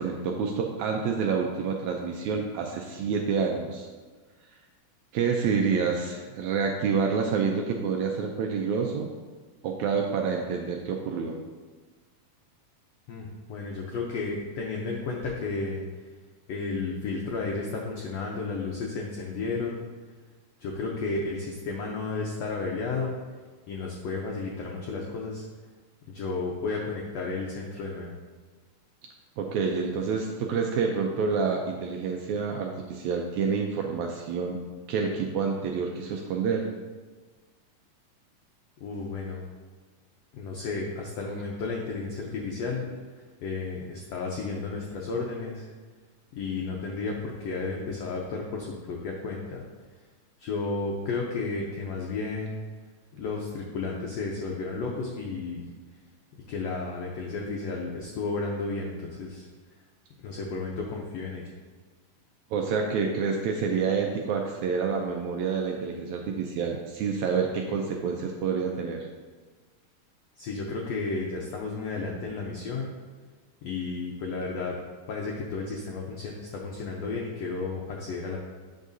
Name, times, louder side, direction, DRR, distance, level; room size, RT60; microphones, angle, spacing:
voice 1, 0.0-3.9 5.1-9.1 9.6-11.4 29.4-34.6 34.9-36.7 62.5-69.1, right 5 dB, 80° right, 2 dB, 1.7 m, -28 dB
voice 2, 13.1-15.8 16.5-19.9 20.6-23.1 23.7-25.4 26.1-28.1 38.8-39.4 40.3-42.9 43.4-45.6 46.3-49.6 50.4-52.6 53.1-55.6 56.5-59.5 60.2-61.5 70.4-72.9 73.6-74.8 75.1-78.4, left 3 dB, 85° left, -1 dB, 1.4 m, -32 dB
8.8 x 6.3 x 2.6 m, 1.4 s
omnidirectional pair, 3.8 m